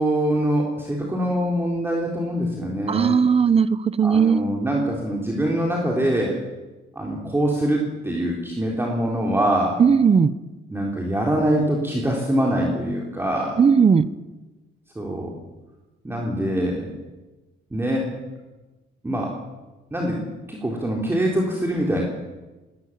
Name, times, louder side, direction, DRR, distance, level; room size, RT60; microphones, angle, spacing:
voice 1, 0.0-3.2 4.0-6.4 7.0-9.8 10.7-13.6 15.0-15.3 16.0-16.9 17.7-18.1 19.0-19.3 19.9-20.2 20.5-22.0, right 1 dB, 10° right, -2 dB, 3.6 m, -24 dB
voice 2, 2.9-4.4 9.8-10.3 13.6-14.1, right 6 dB, 30° right, 16 dB, 0.9 m, -17 dB
21.5 x 18.5 x 7.4 m, 1.2 s
cardioid pair, 140°, 21 cm